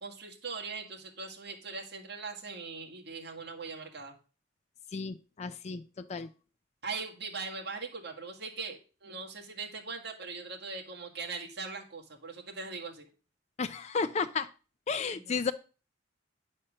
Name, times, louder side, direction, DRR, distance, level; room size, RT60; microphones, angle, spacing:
voice 1, 0.0-4.2 6.1-6.2 6.8-13.1 15.1-15.4, right 4 dB, 55° right, 1 dB, 1.9 m, -41 dB
voice 2, 4.9-6.3 13.6-14.5 14.9-15.5, left 5 dB, 35° left, 10 dB, 0.4 m, -33 dB
9.9 x 4.2 x 6.5 m, 0.36 s
head